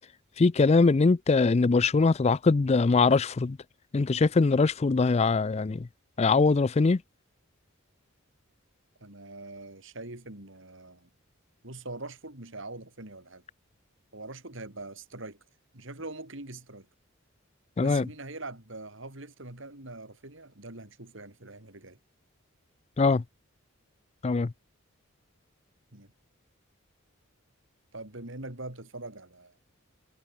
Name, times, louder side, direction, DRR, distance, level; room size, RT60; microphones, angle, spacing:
voice 1, 0.4-3.6 3.9-5.9 6.2-7.0 17.8-18.1 23.0-23.2 24.2-24.5, left 4 dB, 30° left, 0.4 m, -22 dB
voice 2, 9.0-11.1 11.6-13.4 14.1-15.4 15.7-16.9 17.8-22.0 25.9-26.1 27.9-29.6, right 2 dB, 60° right, 4.0 m, -43 dB
head